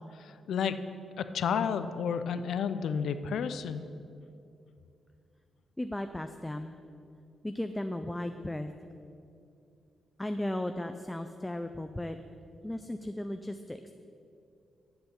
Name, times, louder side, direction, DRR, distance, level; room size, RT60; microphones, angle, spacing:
voice 1, 0.2-0.8 1.2-3.8, left 7 dB, 75° left, 11 dB, 0.5 m, -31 dB
voice 2, 5.8-6.7 7.4-8.7 10.2-12.2 12.6-13.9, left 1 dB, 10° left, 7 dB, 0.3 m, -35 dB
7.9 x 6.9 x 8.0 m, 2.5 s
wide cardioid pair, 145°, 0 cm